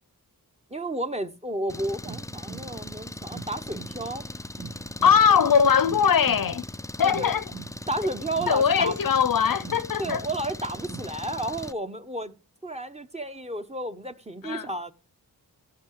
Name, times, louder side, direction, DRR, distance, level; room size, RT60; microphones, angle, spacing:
voice 1, 0.7-4.3 5.0-5.2 7.0-7.3 7.9-9.0 10.0-12.3 12.6-14.9, right 1 dB, 15° right, 1.1 m, -32 dB
Engine, 1.7-11.7, left 1 dB, 10° left, 0.5 m, -39 dB
sound 1, 2.0-11.1, right 5 dB, 75° right, 1.6 m, -45 dB
voice 2, 5.0-6.7 7.0-7.4 8.5-10.2 14.4-14.7, left 7 dB, 65° left, 0.8 m, -21 dB
16.5 x 5.8 x 4.7 m
wide cardioid pair, 85°, 37 cm